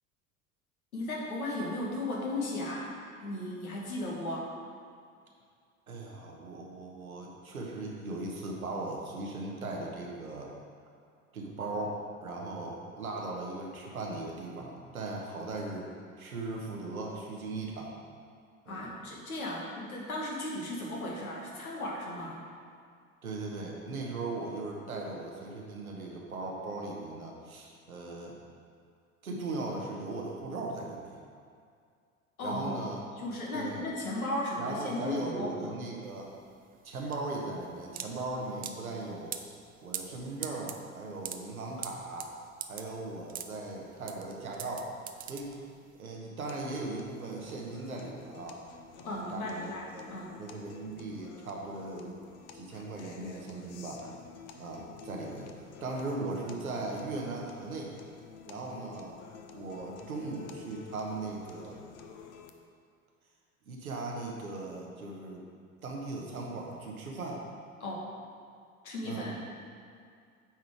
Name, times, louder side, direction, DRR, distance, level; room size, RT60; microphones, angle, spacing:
voice 1, 0.9-2.9 3.2-4.5 18.7-22.4 32.4-32.8 33.2-35.7 49.0-50.3 67.8-68.1 68.8-69.4, left 1 dB, 80° left, -3 dB, 1.5 m, -35 dB
voice 2, 5.9-10.5 11.3-15.9 16.2-17.9 18.7-18.9 23.2-28.3 29.2-31.2 32.4-33.0 33.5-33.9 34.6-36.3 36.8-39.3 39.8-42.3 42.7-44.9 45.3-45.6 45.9-48.6 49.0-52.2 52.5-54.0 54.6-55.5 55.8-57.9 58.5-59.2 59.5-61.8 63.6-65.4 65.8-67.4 69.0-69.4, right 2 dB, 85° right, -1 dB, 1.1 m, -38 dB
sound 1, 36.0-46.0, right 8 dB, 20° right, 0.4 m, -43 dB
sound 2, 46.5-62.5, left 6 dB, 50° left, 0.7 m, -51 dB
8.7 x 3.8 x 4.7 m, 2.2 s
figure-of-eight pair, 70°, 42 cm